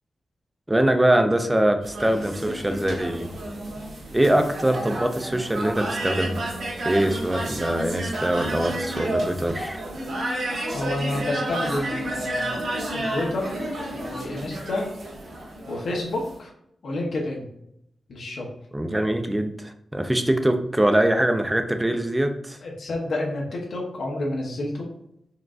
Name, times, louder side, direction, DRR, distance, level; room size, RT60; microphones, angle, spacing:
voice 1, 0.7-3.3 4.1-6.5 6.8-9.8 18.7-22.6, right 1 dB, 10° right, 6 dB, 0.4 m, -23 dB
sound 1, 1.8-16.4, right 1 dB, 80° right, 1.5 m, -31 dB
voice 2, 10.7-12.5 12.9-13.6 13.9-14.9 15.7-16.5 16.8-17.5 18.1-18.5 22.6-24.8, left 2 dB, 65° left, -1 dB, 0.8 m, -29 dB
4.5 x 3.7 x 2.4 m, 0.75 s
wide cardioid pair, 150°, 0 cm